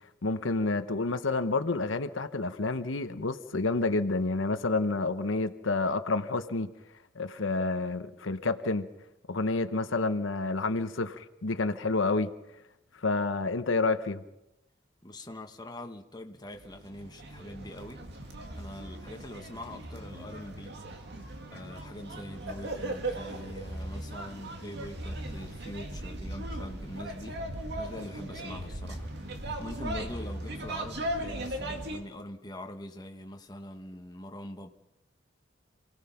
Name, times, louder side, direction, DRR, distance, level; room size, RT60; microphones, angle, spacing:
voice 1, 0.2-6.7 7.1-8.9 9.3-12.3 13.0-14.2, left 3 dB, 80° left, 0.9 m, -29 dB
voice 2, 15.0-18.1 18.6-20.8 21.5-27.4 27.7-34.7, left 1 dB, 20° left, 1.3 m, -43 dB
sound 1, 16.5-32.0, right 1 dB, 60° right, 2.2 m, -38 dB
27.5 x 17.5 x 5.8 m
head